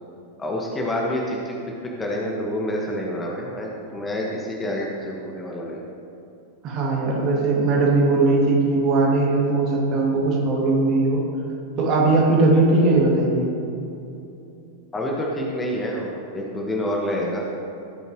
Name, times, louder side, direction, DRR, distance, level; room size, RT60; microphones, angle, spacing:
voice 1, 0.4-1.5 2.0-5.8 14.9-17.4, left 1 dB, 15° left, -2 dB, 1.6 m, -27 dB
voice 2, 6.6-11.2 11.8-13.5, right 2 dB, 35° right, -3 dB, 2.5 m, -19 dB
16.0 x 9.0 x 3.2 m, 2.8 s
figure-of-eight pair, 90°, 0 cm